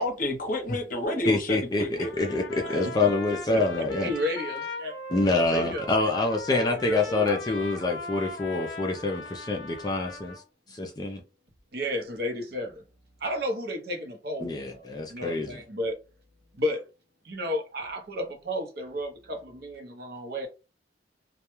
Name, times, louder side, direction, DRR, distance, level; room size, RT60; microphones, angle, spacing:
voice 1, 0.0-2.1, left 1 dB, 50° left, 0.7 m, -29 dB
voice 2, 1.3-4.1 5.1-10.4 10.7-11.2 14.4-15.6, left 3 dB, 20° left, 0.3 m, -26 dB
Trumpet, 2.0-10.4, left 2 dB, 85° left, 0.5 m, -39 dB
voice 3, 2.6-2.9 3.5-3.6 4.0-5.0 5.5-6.1 6.5-7.4 11.7-12.8 13.2-16.0 16.5-16.8 17.2-20.5, equal, 60° right, 0.7 m, -32 dB
2.2 x 2.1 x 2.9 m
head